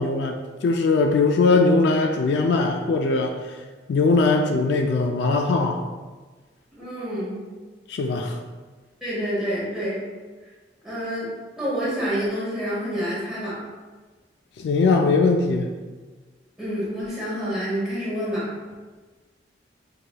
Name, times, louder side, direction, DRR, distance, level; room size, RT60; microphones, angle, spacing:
voice 1, 0.0-3.3 3.9-5.8 7.9-8.4 14.6-15.7, left 3 dB, 70° left, 4 dB, 0.3 m, -20 dB
voice 2, 6.8-7.4 9.0-10.0 10.8-11.3 11.6-13.6 16.6-18.5, equal, ahead, -10 dB, 1.4 m, -28 dB
4.7 x 2.8 x 2.2 m, 1.3 s
head